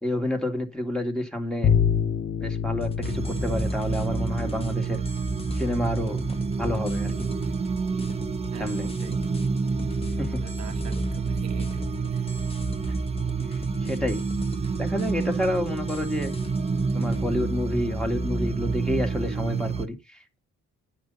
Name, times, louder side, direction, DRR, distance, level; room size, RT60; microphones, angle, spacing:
voice 1, 0.0-1.7 2.4-5.0 5.6-7.3 8.5-8.9 10.2-10.4 13.8-14.2 14.8-16.3 16.9-20.4, left 1 dB, ahead, 2.1 m, -29 dB
Bowed string instrument, 1.6-4.7, left 8 dB, 35° left, 0.9 m, -26 dB
sound 1, 2.8-17.2, left 3 dB, 20° left, 1.2 m, -43 dB
sound 2, 3.0-19.9, right 4 dB, 20° right, 0.8 m, -28 dB
voice 2, 8.5-9.2 10.3-12.3, right 8 dB, 60° right, 1.3 m, -44 dB
9.8 x 6.1 x 5.5 m
cardioid pair, 90°, 30 cm